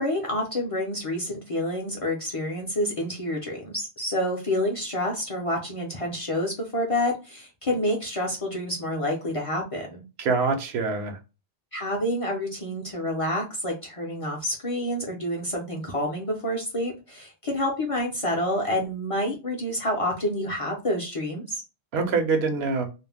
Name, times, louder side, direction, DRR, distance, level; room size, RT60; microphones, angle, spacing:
voice 1, 0.0-10.0 11.7-21.6, left 1 dB, 40° left, -1 dB, 0.5 m, -28 dB
voice 2, 10.2-11.2 21.9-22.9, right 4 dB, 75° right, 6 dB, 0.9 m, -24 dB
2.4 x 2.0 x 3.3 m, 0.29 s
omnidirectional pair, 1.1 m